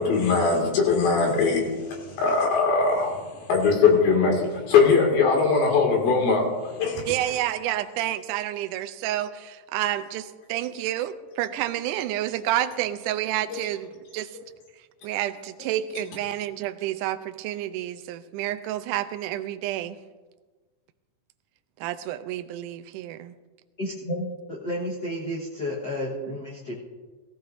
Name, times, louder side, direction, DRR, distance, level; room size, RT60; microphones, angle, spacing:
voice 1, 0.0-7.3 13.5-13.6, left 4 dB, 90° left, 0 dB, 4.1 m, -21 dB
voice 2, 7.1-14.4 15.0-20.0 21.8-23.4 26.1-26.3, right 13 dB, 80° right, 10 dB, 1.9 m, -29 dB
voice 3, 23.8-26.7, left 1 dB, 60° left, -5 dB, 1.1 m, -31 dB
17.5 x 15.0 x 2.6 m, 1.3 s
omnidirectional pair, 4.1 m